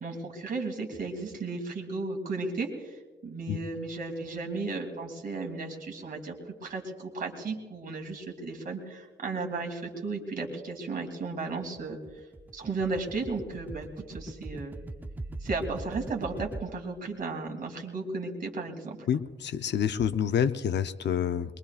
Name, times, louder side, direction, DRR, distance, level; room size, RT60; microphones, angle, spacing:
voice 1, 0.0-12.0 12.5-14.8 15.4-19.0, right 3 dB, 50° right, 2 dB, 2.2 m, -34 dB
sound 1, 11.6-16.6, right 2 dB, 10° right, 0.4 m, -41 dB
voice 2, 19.1-21.6, left 8 dB, 70° left, 12 dB, 0.6 m, -28 dB
22.5 x 22.0 x 2.4 m, 1.4 s
wide cardioid pair, 150°, 19 cm